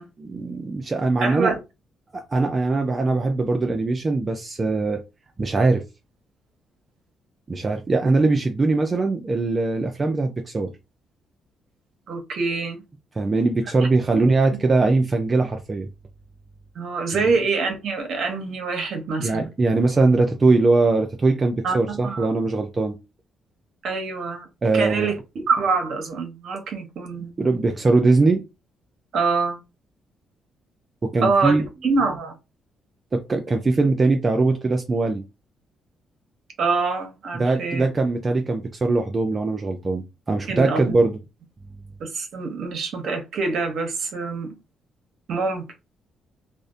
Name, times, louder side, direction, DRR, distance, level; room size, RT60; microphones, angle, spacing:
voice 1, 0.2-1.6 2.3-5.0 5.4-5.8 7.5-10.7 13.2-15.9 19.2-22.9 24.6-25.1 27.4-28.4 31.1-31.6 33.1-35.2 37.3-41.2, right 3 dB, 30° right, 0.4 m, -21 dB
voice 2, 1.2-1.5 12.1-12.8 14.1-14.2 14.5-14.6 16.8-19.5 21.6-22.3 23.8-24.5 24.7-27.3 29.1-29.6 31.2-32.3 36.6-37.9 40.5-41.1 42.0-44.6 45.3-45.6, right 4 dB, 65° right, 0.7 m, -25 dB
2.5 x 2.0 x 2.5 m
cardioid pair, 90°, 0 cm